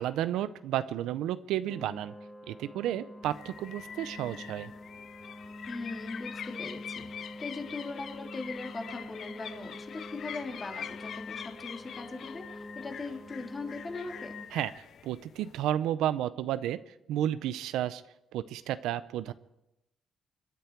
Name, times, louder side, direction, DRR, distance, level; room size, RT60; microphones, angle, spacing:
voice 1, 0.0-2.1 2.5-4.7 14.5-14.7 15.0-18.0 18.3-19.3, right 12 dB, 90° right, 14 dB, 0.6 m, -32 dB
sound 1, 1.7-14.5, left 1 dB, 10° left, 1.0 m, -46 dB
sound 2, 3.2-15.7, left 8 dB, 65° left, 0.5 m, -45 dB
voice 2, 5.7-14.3, left 3 dB, 30° left, 2 dB, 2.9 m, -40 dB
26.0 x 10.5 x 4.6 m, 0.87 s
cardioid pair, 90°, 0 cm